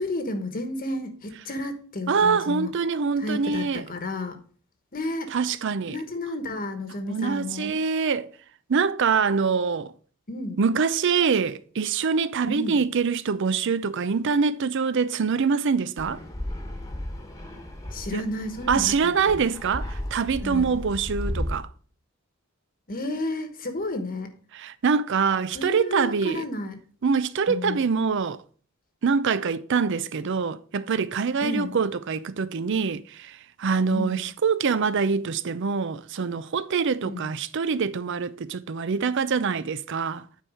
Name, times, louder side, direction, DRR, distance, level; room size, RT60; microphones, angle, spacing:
voice 1, 0.0-2.7 3.2-4.4 4.9-5.3 5.8-7.8 10.3-10.6 12.5-12.8 17.9-19.4 20.4-20.8 22.9-24.3 25.5-26.8 27.5-27.8 31.4-31.8 33.9-34.3 37.0-37.3, left 1 dB, 45° left, 1.1 m, -32 dB
voice 2, 2.1-3.8 5.3-6.0 7.1-8.3 8.7-9.9 10.6-16.2 18.1-18.2 18.7-21.7 24.5-26.5 27.0-28.4 29.0-40.2, right 5 dB, 65° right, 0.5 m, -24 dB
Fixed-wing aircraft airplane, 16.0-21.5, left 1 dB, 15° left, 1.3 m, -34 dB
9.4 x 4.6 x 4.8 m
head